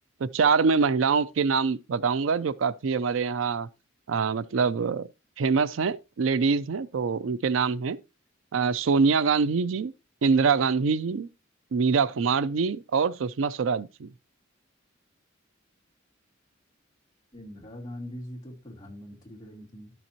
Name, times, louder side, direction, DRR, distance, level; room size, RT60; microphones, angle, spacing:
voice 1, 0.2-3.7 4.1-5.1 5.4-8.0 8.5-9.9 10.2-11.3 11.7-14.1, right 5 dB, 80° right, 0.4 m, -24 dB
voice 2, 17.3-19.9, left 1 dB, 20° left, 2.9 m, -42 dB
12.0 x 7.0 x 2.9 m
head